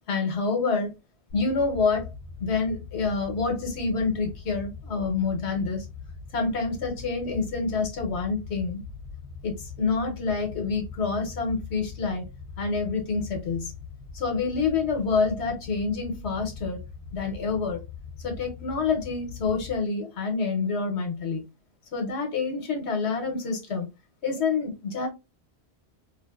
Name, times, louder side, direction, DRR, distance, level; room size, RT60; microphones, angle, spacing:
voice 1, 0.1-0.9 1.3-2.1 2.4-5.8 6.3-8.8 9.4-12.3 12.6-13.7 14.1-16.8 17.1-17.8 18.2-21.4 21.9-23.9 24.2-25.1, left 4 dB, 80° left, 1.1 m, -27 dB
sound 1, 1.3-19.8, left 5 dB, 55° left, 0.7 m, -42 dB
2.5 x 2.4 x 2.3 m
omnidirectional pair, 1.1 m